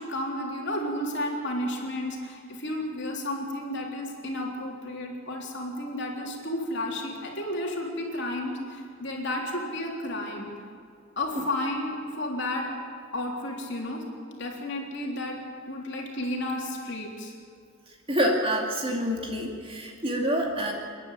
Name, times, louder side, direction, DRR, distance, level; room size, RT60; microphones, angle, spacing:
voice 1, 0.0-10.5 11.2-12.8 13.1-14.1 14.4-15.4 15.7-17.3, left 1 dB, 55° left, -1 dB, 3.5 m, -32 dB
voice 2, 18.1-20.7, equal, 25° right, 0 dB, 2.4 m, -27 dB
28.5 x 10.5 x 9.2 m, 2.3 s
head